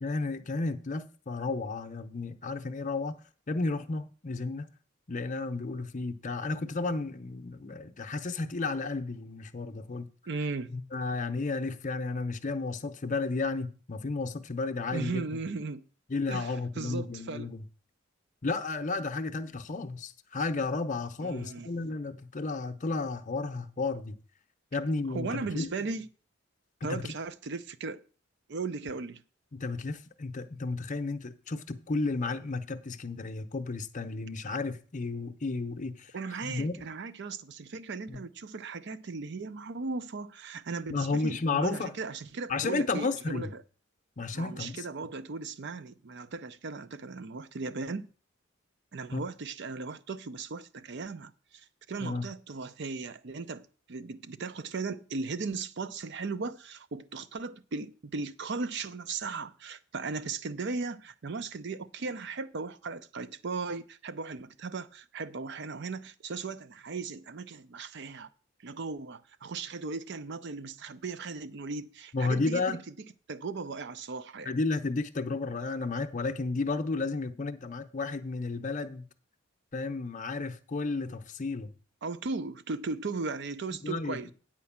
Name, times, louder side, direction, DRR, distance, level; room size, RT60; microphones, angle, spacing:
voice 1, 0.0-3.2 3.5-4.7 5.1-10.1 10.7-15.2 16.1-17.6 18.4-24.2 24.7-25.7 26.9-27.1 29.5-36.1 36.4-36.9 38.1-38.2 40.9-41.9 42.5-43.5 44.2-44.9 49.1-49.2 52.0-52.3 72.1-72.8 74.4-79.0 79.7-81.7 83.8-84.2, left 3 dB, 40° left, 0.7 m, -32 dB
voice 2, 10.3-10.7 14.9-15.8 16.3-17.5 21.2-21.7 25.1-26.1 26.8-28.0 28.5-29.2 36.1-43.6 44.3-48.1 48.9-68.3 68.6-72.8 73.3-74.6 82.0-84.3, right 4 dB, 55° right, 0.6 m, -37 dB
9.5 x 4.5 x 7.2 m
head